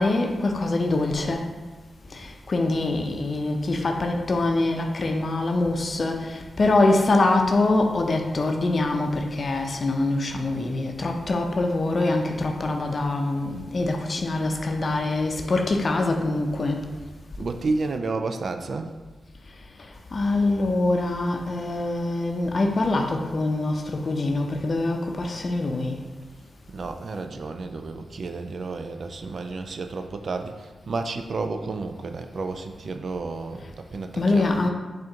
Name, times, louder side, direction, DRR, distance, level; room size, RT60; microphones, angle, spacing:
voice 1, 0.0-1.5 2.1-16.9 20.1-26.0 34.2-34.7, left 2 dB, 55° left, 3 dB, 0.5 m, -24 dB
voice 2, 17.4-18.9 26.7-34.5, right 3 dB, 65° right, 7 dB, 0.3 m, -31 dB
4.2 x 2.5 x 3.7 m, 1.3 s
supercardioid pair, 45°, 0 cm